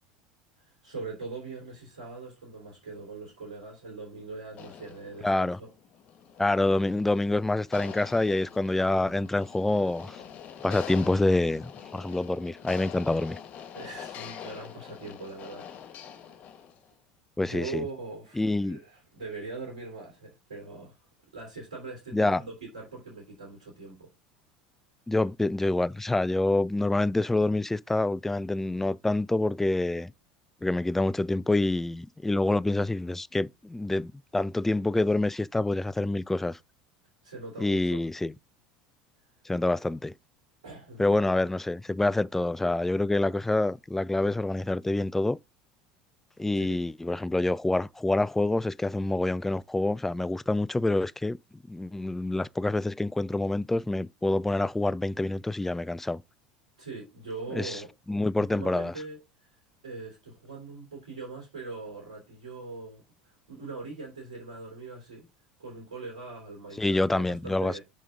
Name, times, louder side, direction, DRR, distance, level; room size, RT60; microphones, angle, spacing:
voice 1, 0.6-5.7 13.7-16.3 17.4-21.0 21.3-24.1 37.2-38.0 40.6-41.1 46.5-46.8 56.8-57.9 58.3-59.2 59.8-65.3 65.6-67.8, right 3 dB, 85° right, 3.4 m, -41 dB
sound 1, 4.5-16.9, left 9 dB, 45° left, 1.4 m, -44 dB
voice 2, 5.2-5.6 6.4-10.2 10.6-13.4 17.4-17.8 18.4-18.8 22.1-22.4 25.1-30.1 30.6-36.6 37.6-38.3 39.5-40.1 41.0-45.4 46.4-51.4 51.7-56.2 57.5-57.8 58.1-58.9 66.8-67.8, left 2 dB, 10° left, 0.4 m, -27 dB
5.6 x 5.2 x 5.0 m
hypercardioid pair, 80°, 4 cm